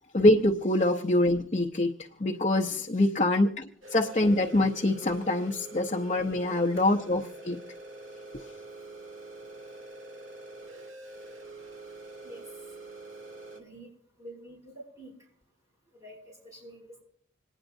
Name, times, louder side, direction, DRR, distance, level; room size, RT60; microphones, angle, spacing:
voice 1, 0.1-1.9 2.2-3.6 3.9-7.6, left 1 dB, 35° left, 1 dB, 0.7 m, -24 dB
sound 1, 3.8-13.6, right 2 dB, 75° right, 2.2 m, -45 dB
voice 2, 13.5-13.9 14.2-15.1 16.0-17.0, right 1 dB, 15° right, -3 dB, 6.5 m, -47 dB
27.0 x 9.9 x 2.6 m, 0.64 s
head